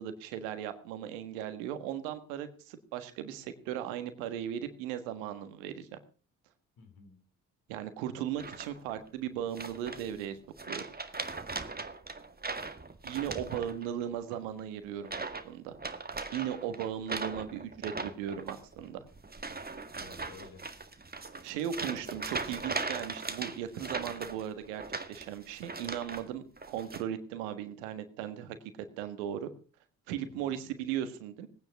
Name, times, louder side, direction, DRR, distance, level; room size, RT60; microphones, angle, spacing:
voice 1, 0.0-5.9 7.7-10.4 10.7-10.8 13.0-15.8 16.3-19.1 21.4-24.8 25.1-28.6 29.0-29.5 30.1-31.5, right 10 dB, 85° right, 10 dB, 1.5 m, -37 dB
voice 2, 6.8-7.2 13.3-13.6 19.9-20.7 21.9-22.1 30.2-30.6, left 5 dB, 65° left, 7 dB, 3.7 m, -53 dB
sound 1, 8.4-8.9 9.6-10.3 10.6-14.0 14.3-14.6 15.0-15.5 15.7-26.3 26.6-27.0, right 3 dB, 25° right, 1.9 m, -39 dB
18.5 x 9.6 x 5.8 m, 0.38 s
hypercardioid pair, 45°, 38 cm